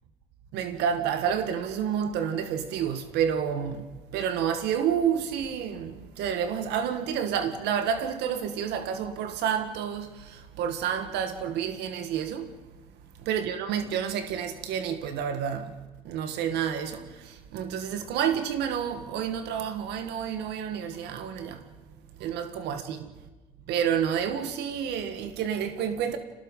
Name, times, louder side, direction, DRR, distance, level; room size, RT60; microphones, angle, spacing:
voice 1, 0.5-3.9 4.1-12.5 13.3-15.7 16.1-21.6 22.2-23.1 23.7-26.2, right 8 dB, 85° right, 1.8 m, -29 dB
26.0 x 19.0 x 5.5 m
cardioid pair, 110°, 17 cm